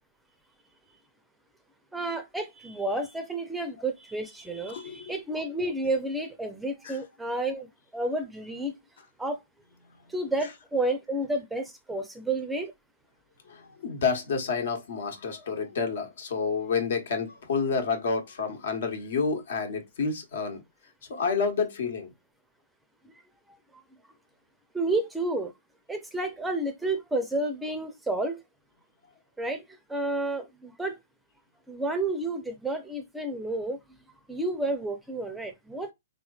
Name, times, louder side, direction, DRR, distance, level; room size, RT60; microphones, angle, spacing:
voice 1, 1.9-7.7 7.9-8.7 9.2-9.4 10.1-12.7 24.7-25.5 25.9-28.4 29.4-29.6 29.9-31.0 31.7-33.8 34.3-35.9, right 2 dB, 5° right, 0.5 m, -30 dB
voice 2, 4.7-5.1 6.8-7.0 13.5-20.6 21.1-22.1, left 5 dB, 65° left, 1.1 m, -29 dB
3.7 x 3.0 x 2.3 m
hypercardioid pair, 135°, 0 cm